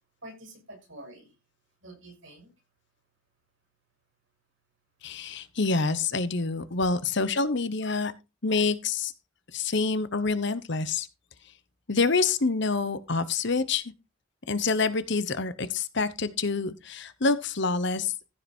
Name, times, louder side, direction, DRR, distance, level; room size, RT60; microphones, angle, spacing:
voice 1, 0.2-1.3 1.8-2.5 6.6-6.8, right 1 dB, 60° right, 6.3 m, -47 dB
voice 2, 5.0-8.1 8.4-9.1 9.5-11.1 11.9-13.8 14.5-18.1, left 4 dB, 55° left, 1.0 m, -27 dB
15.0 x 5.8 x 4.5 m
head